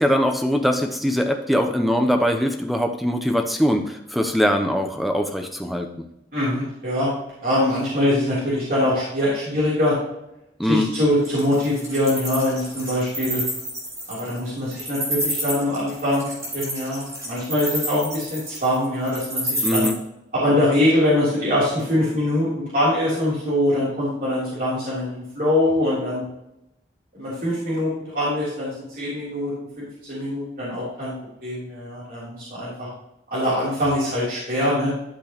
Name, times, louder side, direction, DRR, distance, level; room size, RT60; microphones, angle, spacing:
voice 1, 0.0-5.9 10.6-10.9 19.6-19.9, equal, ahead, 4 dB, 0.7 m, -21 dB
voice 2, 6.3-7.1 7.4-10.0 10.7-13.4 14.1-16.2 16.5-19.9 20.3-22.5 22.7-26.2 27.1-31.1 31.4-32.9 33.3-34.9, left 1 dB, 50° right, -9 dB, 3.3 m, -23 dB
Wild animals, 11.2-19.9, equal, 15° right, 2.5 m, -29 dB
12.0 x 6.0 x 3.0 m, 0.85 s
head